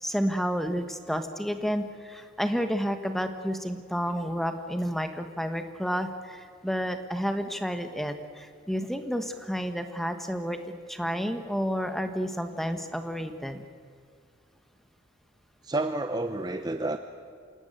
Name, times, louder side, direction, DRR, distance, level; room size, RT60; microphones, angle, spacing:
voice 1, 0.0-10.6 10.9-13.6, equal, ahead, 7 dB, 1.3 m, -30 dB
voice 2, 15.6-17.0, right 2 dB, 20° right, 7 dB, 0.7 m, -29 dB
27.5 x 18.0 x 9.0 m, 2.1 s
head